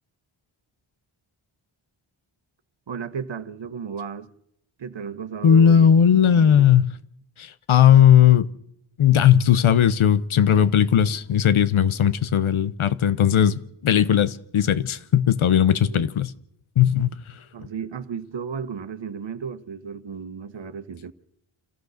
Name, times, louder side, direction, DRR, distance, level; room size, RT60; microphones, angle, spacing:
voice 1, 2.9-4.3 4.8-5.9 6.2-6.7 15.9-16.0 17.5-21.1, right 6 dB, 60° right, 1.4 m, -34 dB
voice 2, 5.4-6.9 7.4-8.5 9.0-16.3 16.8-17.1, left 9 dB, 75° left, 1.1 m, -17 dB
27.5 x 15.0 x 6.6 m
cardioid pair, 75°, 49 cm